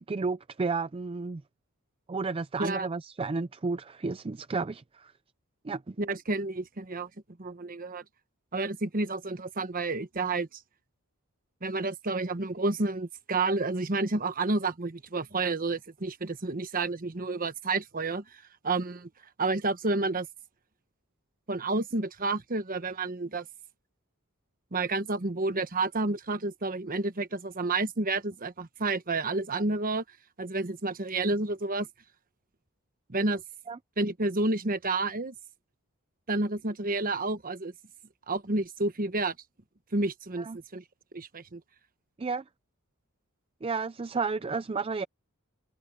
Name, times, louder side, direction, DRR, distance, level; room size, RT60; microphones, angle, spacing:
voice 1, 0.0-1.4 2.1-5.1 5.6-6.0 33.7-33.8 40.4-40.6 42.2-42.4 43.6-45.0, right 4 dB, 25° right, 0.4 m, -32 dB
voice 2, 6.0-7.1 7.4-8.0 8.5-10.6 11.6-19.1 19.4-20.3 21.5-23.5 24.7-30.0 30.4-31.9 33.1-33.4 34.0-35.3 36.3-37.7 38.3-39.3 39.9-40.8 41.1-41.6, right 3 dB, 40° right, 1.2 m, -30 dB
head